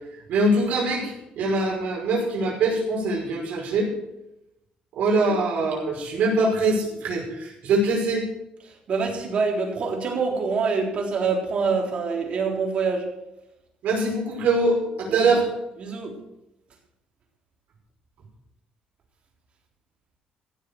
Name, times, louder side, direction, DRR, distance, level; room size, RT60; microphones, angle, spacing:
voice 1, 0.3-3.9 4.9-8.3 13.8-15.4, right 2 dB, 70° right, -2 dB, 5.6 m, -23 dB
voice 2, 8.7-13.1 15.1-15.3 15.8-16.2, right 4 dB, 45° right, 0 dB, 3.8 m, -26 dB
15.5 x 7.7 x 6.8 m, 0.89 s
cardioid pair, 125°, 3 cm